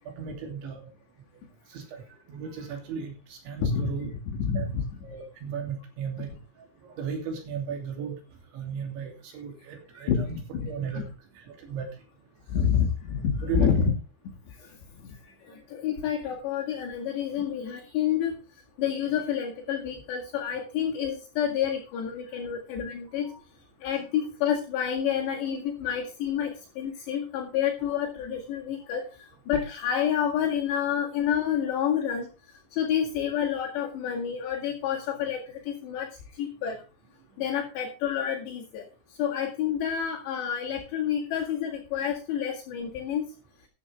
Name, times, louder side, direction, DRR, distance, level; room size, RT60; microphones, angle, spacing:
voice 1, 0.2-0.9 1.7-2.0 2.3-4.1 4.5-4.7 5.0-6.3 6.8-8.2 8.5-10.3 10.7-11.0 11.4-11.9 13.4-13.7 19.1-19.2 26.4-26.5, right 6 dB, 65° right, 3 dB, 5.1 m, -35 dB
voice 2, 3.6-4.1 4.4-4.8 10.1-10.7 12.5-13.9 14.5-18.4 18.8-23.3 23.8-32.3 32.7-36.8 37.4-43.3, left 8 dB, 60° left, -2 dB, 4.0 m, -29 dB
14.0 x 11.0 x 3.5 m, 0.31 s
omnidirectional pair, 6.0 m